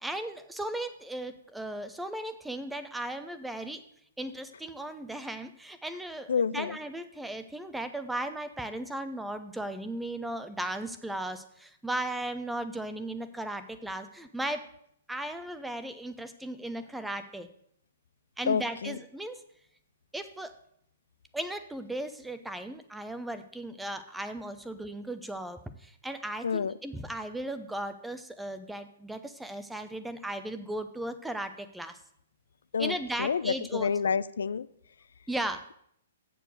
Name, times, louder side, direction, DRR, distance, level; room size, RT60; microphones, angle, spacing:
voice 1, 0.0-3.8 4.2-14.7 15.1-17.5 18.4-19.4 20.1-20.5 21.3-32.0 32.8-33.9 35.3-35.6, right 1 dB, 5° right, 9 dB, 0.7 m, -36 dB
voice 2, 6.3-6.8 18.5-19.0 26.4-26.7 32.7-34.7, left 6 dB, 80° left, 18 dB, 0.3 m, -29 dB
7.4 x 6.9 x 6.5 m, 0.69 s
hypercardioid pair, 135°, 0 cm